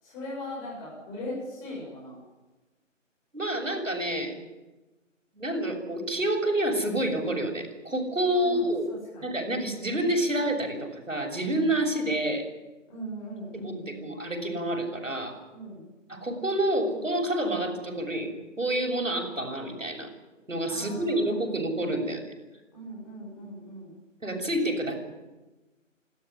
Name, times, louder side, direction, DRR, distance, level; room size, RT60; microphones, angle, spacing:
voice 1, 0.0-2.2 8.3-9.3 12.9-14.1 15.5-15.8 20.7-21.4 22.7-23.9, left 1 dB, 10° left, -5 dB, 7.0 m, -39 dB
voice 2, 3.3-4.3 5.3-8.9 9.2-12.4 13.5-15.4 16.1-18.3 18.6-20.1 20.5-22.2 24.2-25.0, right 1 dB, 75° right, 3 dB, 7.1 m, -28 dB
29.5 x 13.5 x 9.9 m, 1.1 s
figure-of-eight pair, 160°, 39 cm